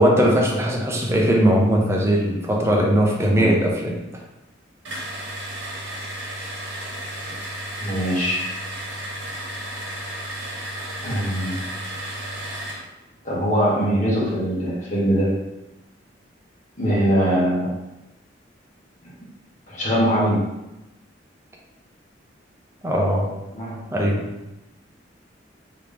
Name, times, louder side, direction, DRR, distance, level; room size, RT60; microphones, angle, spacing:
voice 1, 0.0-4.1 22.8-23.3 23.9-24.3, equal, 15° right, -1 dB, 0.6 m, -19 dB
sound 1, 4.8-12.9, right 1 dB, 75° right, 1.0 m, -33 dB
voice 2, 7.8-8.5 11.0-11.6 13.2-15.4 16.8-17.8 19.0-19.1 19.7-20.5 23.5-23.8, equal, 40° left, -6 dB, 1.2 m, -22 dB
3.4 x 2.9 x 3.4 m, 0.96 s
head